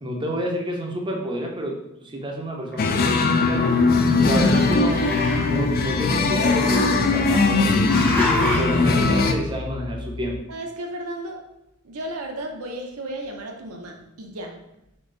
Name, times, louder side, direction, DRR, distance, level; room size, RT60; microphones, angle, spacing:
voice 1, 0.0-3.7 4.2-5.0 5.5-10.4, equal, 20° right, 0 dB, 0.6 m, -29 dB
Growling, 2.7-3.9 4.2-5.6 6.5-7.5 7.9-8.8, left 1 dB, 10° left, 0.8 m, -30 dB
sound 1, 2.8-9.3, left 3 dB, 40° left, 0.4 m, -20 dB
sound 2, 4.1-10.4, left 2 dB, 70° left, 0.9 m, -35 dB
voice 2, 10.5-11.5 11.8-14.6, right 1 dB, 70° right, 2 dB, 0.7 m, -34 dB
3.8 x 3.4 x 3.8 m, 0.85 s
head